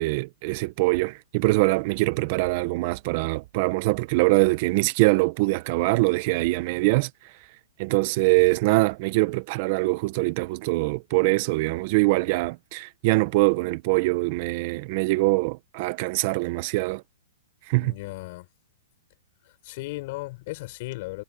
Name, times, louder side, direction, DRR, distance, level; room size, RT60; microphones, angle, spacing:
voice 1, 0.0-7.1 7.8-17.0 17.7-17.9, right 23 dB, 45° right, 1.5 m, -23 dB
voice 2, 17.8-18.5 19.4-21.2, left 21 dB, 45° left, 4.5 m, -36 dB
hypercardioid pair, 140°, 0 cm